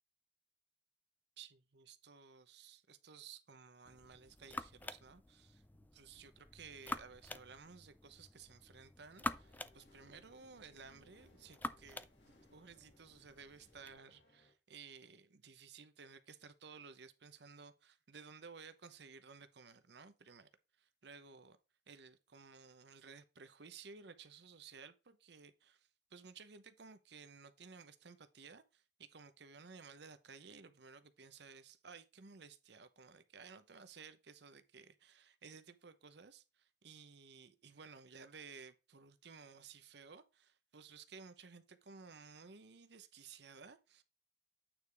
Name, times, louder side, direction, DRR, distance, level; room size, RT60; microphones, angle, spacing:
voice 1, 1.4-20.5 20.8-21.6 21.9-44.0, right 5 dB, 65° right, 0.8 m, -56 dB
sound 1, 3.9-14.0, left 2 dB, 10° left, 0.4 m, -48 dB
sound 2, 9.3-14.5, left 1 dB, 70° left, 2.3 m, -69 dB
9.0 x 4.8 x 3.4 m
head